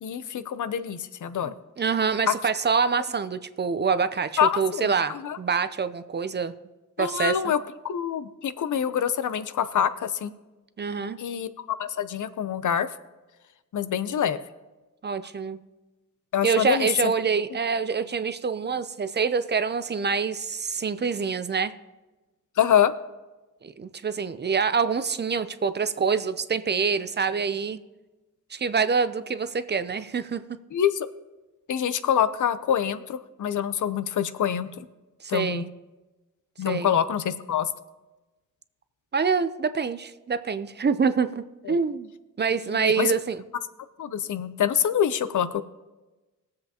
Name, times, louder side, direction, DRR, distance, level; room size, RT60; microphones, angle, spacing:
voice 1, 0.0-1.5 2.3-2.4 4.4-5.4 7.0-7.6 7.8-10.3 11.2-12.9 13.7-14.4 16.3-17.1 22.6-22.9 30.7-30.9 31.7-34.9 35.3-35.7 36.6-37.7 41.7-41.8 42.7-43.1 44.0-45.6, left 9 dB, 70° left, 13 dB, 0.7 m, -25 dB
voice 2, 1.4-6.5 7.0-7.4 10.8-11.2 15.0-15.6 16.4-21.7 23.6-27.8 28.5-30.4 35.2-35.7 36.7-36.9 39.1-42.1 42.4-43.4, right 5 dB, 35° right, 12 dB, 0.5 m, -26 dB
21.0 x 7.6 x 2.9 m, 1.1 s
cardioid pair, 95°, 32 cm